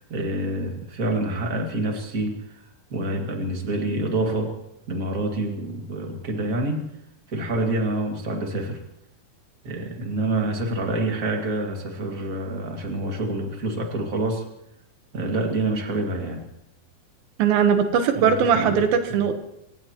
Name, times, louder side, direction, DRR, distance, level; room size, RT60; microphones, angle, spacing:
voice 1, 0.0-2.6 2.9-4.5 4.9-6.8 7.3-8.8 9.6-14.4 15.1-16.5 18.1-18.8, right 2 dB, 30° right, 2 dB, 1.7 m, -27 dB
voice 2, 17.4-19.3, right 7 dB, 75° right, 7 dB, 3.0 m, -20 dB
25.0 x 18.0 x 3.0 m, 0.84 s
omnidirectional pair, 4.4 m